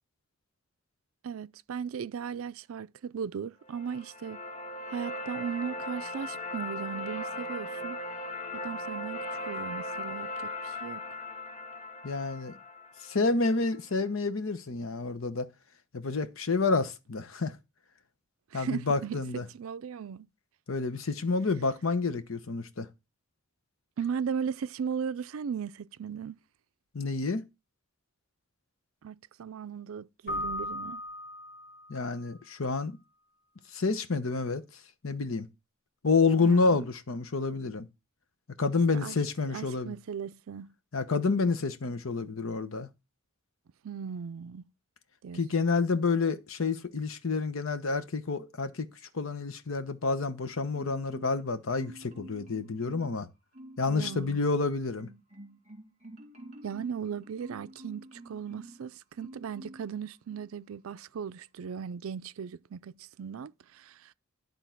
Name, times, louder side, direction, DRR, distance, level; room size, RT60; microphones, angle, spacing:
voice 1, 1.2-4.4 4.9-8.0 8.6-11.0 18.5-20.3 24.0-26.4 29.0-31.0 36.4-36.8 38.9-39.2 39.4-40.7 43.8-44.7 45.2-45.7 53.9-54.4 56.6-64.1, right 7 dB, 80° right, 0.4 m, -37 dB
sound 1, 3.7-13.7, left 1 dB, 35° left, 0.9 m, -38 dB
voice 2, 12.0-12.5 13.0-15.5 15.9-17.6 18.5-19.5 20.7-22.9 26.9-27.4 31.9-33.0 33.7-34.6 35.0-35.5 36.0-37.9 38.6-39.9 40.9-42.9 45.3-48.9 49.1-53.3 53.8-55.1, left 4 dB, 75° left, 0.9 m, -29 dB
Keyboard (musical), 30.3-32.1, left 1 dB, 50° left, 1.9 m, -37 dB
Marimba xylophone, 50.7-51.5 51.8-53.2 53.5-54.3 54.6-58.8 59.2-59.9 60.3-60.5, right 1 dB, 35° right, 2.0 m, -49 dB
11.5 x 3.9 x 5.9 m
head